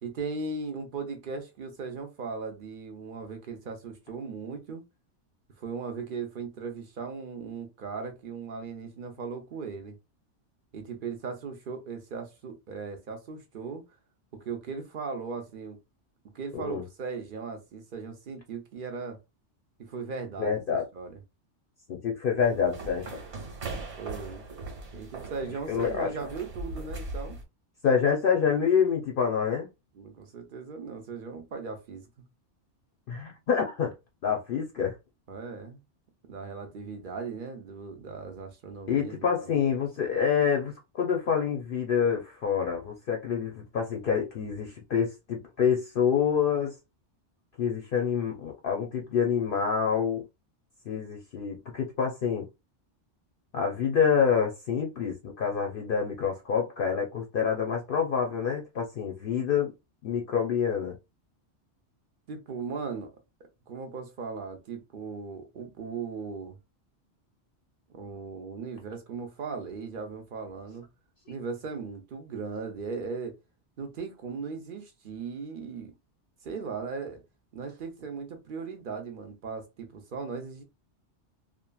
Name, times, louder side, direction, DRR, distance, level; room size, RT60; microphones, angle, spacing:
voice 1, 0.0-4.8 5.6-10.0 10.7-13.8 14.4-15.8 16.3-19.2 19.8-20.6 20.9-21.2 23.6-24.4 24.9-27.4 29.9-32.2 35.3-35.8 36.3-39.5 62.3-63.1 63.7-66.6 67.9-70.9 71.3-73.3 73.8-75.9 76.4-77.2 77.5-80.6, right 5 dB, 50° right, 0.8 m, -38 dB
voice 2, 16.5-16.8 20.4-20.8 21.9-23.2 25.7-26.1 27.8-29.7 33.1-33.9 34.2-34.9 38.9-46.7 47.6-50.2 50.9-52.5 53.5-59.7 60.0-60.9, left 7 dB, 60° left, 0.7 m, -27 dB
sound 1, 22.4-27.4, right 2 dB, 75° right, 1.5 m, -40 dB
2.8 x 2.5 x 2.2 m
omnidirectional pair, 1.2 m